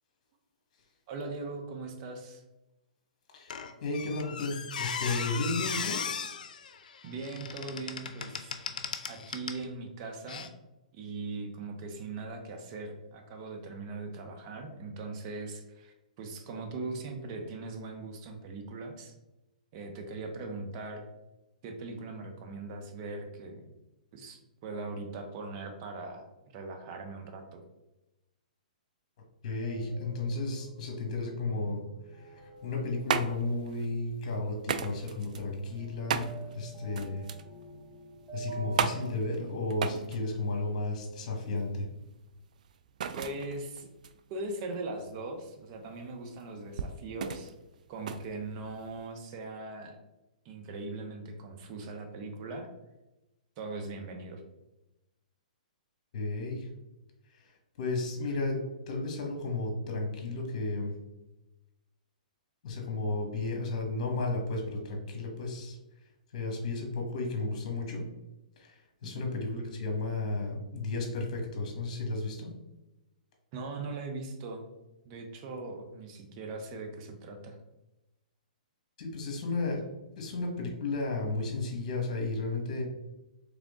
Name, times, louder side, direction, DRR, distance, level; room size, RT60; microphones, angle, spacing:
voice 1, 1.1-2.4 7.0-8.6 9.1-10.5 10.9-19.1 19.7-21.0 21.6-23.6 24.1-26.3 26.5-27.6 43.1-43.9 44.3-47.5 47.9-50.0 50.4-52.7 53.6-54.4 69.0-69.3 73.5-74.6 75.0-77.6, right 3 dB, 40° right, 4 dB, 0.8 m, -40 dB
voice 2, 3.3-6.0 29.4-31.8 32.1-36.3 36.5-37.3 38.3-41.9 56.1-56.7 57.3-57.5 57.8-60.9 62.6-65.8 66.3-68.1 68.6-72.5 79.0-79.8 80.2-82.8, left 3 dB, 55° left, 1 dB, 1.4 m, -33 dB
Squeak, 3.5-9.7 10.3-10.5, left 6 dB, 75° left, 0.5 m, -37 dB
sound 1, 29.6-39.2, right 3 dB, 5° right, 1.0 m, -48 dB
sound 2, 32.6-49.1, right 7 dB, 65° right, 0.4 m, -37 dB
3.6 x 3.6 x 3.6 m, 0.99 s
hypercardioid pair, 135°, 4 cm